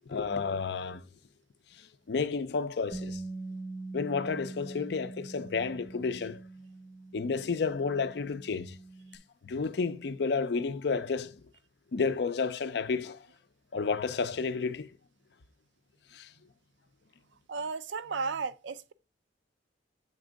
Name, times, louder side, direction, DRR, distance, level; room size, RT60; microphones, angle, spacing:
voice 1, 0.1-1.0 2.1-3.2 3.9-6.4 7.1-8.8 9.4-11.4 11.9-13.2 13.7-14.9 16.1-16.3, left 4 dB, 60° left, 0.4 m, -31 dB
Bass guitar, 2.9-9.2, right 2 dB, 20° right, 0.7 m, -43 dB
voice 2, 17.5-18.9, right 4 dB, 75° right, 0.4 m, -34 dB
7.2 x 3.5 x 5.0 m
head